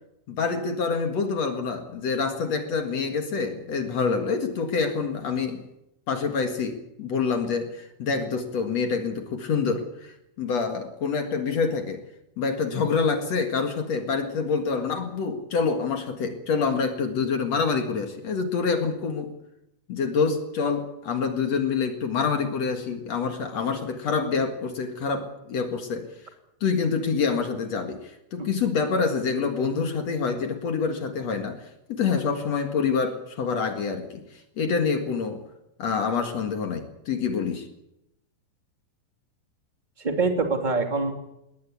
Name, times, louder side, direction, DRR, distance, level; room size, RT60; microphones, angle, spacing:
voice 1, 0.3-5.6 6.1-12.0 12.4-19.3 19.9-26.1 26.6-34.2 34.6-35.4 35.8-37.7, left 5 dB, 50° left, 6 dB, 2.2 m, -26 dB
voice 2, 40.0-41.2, right 3 dB, 15° right, 4 dB, 1.8 m, -25 dB
21.0 x 18.5 x 8.5 m, 0.85 s
omnidirectional pair, 5.1 m